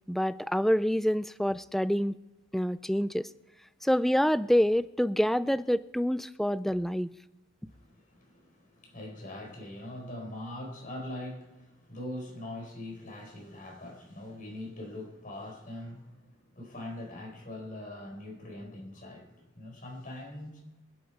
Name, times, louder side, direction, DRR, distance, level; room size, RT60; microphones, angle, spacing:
voice 1, 0.1-2.2 2.5-3.3 3.8-7.1, equal, ahead, 0.4 m, -27 dB
voice 2, 7.7-20.7, left 1 dB, 45° left, 4.4 m, -42 dB
25.0 x 8.5 x 4.6 m
head